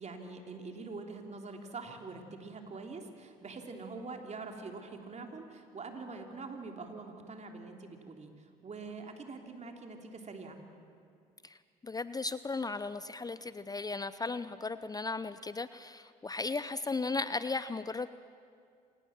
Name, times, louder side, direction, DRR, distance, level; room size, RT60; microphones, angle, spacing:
voice 1, 0.0-10.6, right 3 dB, 40° right, 3 dB, 3.4 m, -44 dB
voice 2, 11.8-18.1, left 3 dB, 20° left, 14 dB, 0.6 m, -36 dB
26.5 x 19.0 x 7.4 m, 2.3 s
supercardioid pair, 60°, 17 cm